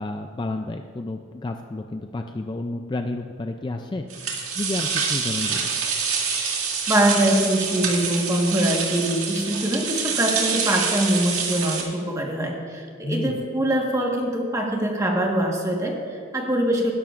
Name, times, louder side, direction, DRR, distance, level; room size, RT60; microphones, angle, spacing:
voice 1, 0.0-5.7 13.0-13.5, left 2 dB, 20° left, 5 dB, 0.3 m, -31 dB
sound 1, 4.1-11.8, right 6 dB, 85° right, 1.9 m, -26 dB
voice 2, 6.9-16.9, right 1 dB, 15° right, 0 dB, 1.4 m, -23 dB
19.5 x 11.0 x 2.5 m, 2.5 s
head